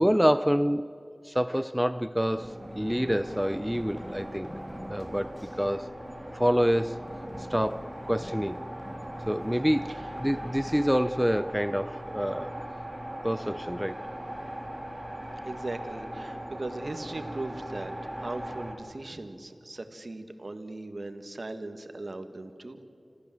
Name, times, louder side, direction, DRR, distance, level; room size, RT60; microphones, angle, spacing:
voice 1, 0.0-4.5 4.9-6.0 6.3-7.0 7.4-8.6 9.3-12.6 13.2-14.1, equal, 5° right, 0.4 m, -27 dB
Run, 2.3-12.0, left 1 dB, 15° left, 1.3 m, -47 dB
sound 1, 2.3-18.7, right 1 dB, 25° right, 4.4 m, -39 dB
voice 2, 15.5-22.8, right 2 dB, 55° right, 1.7 m, -38 dB
26.5 x 15.0 x 7.7 m
wide cardioid pair, 45°, 0 cm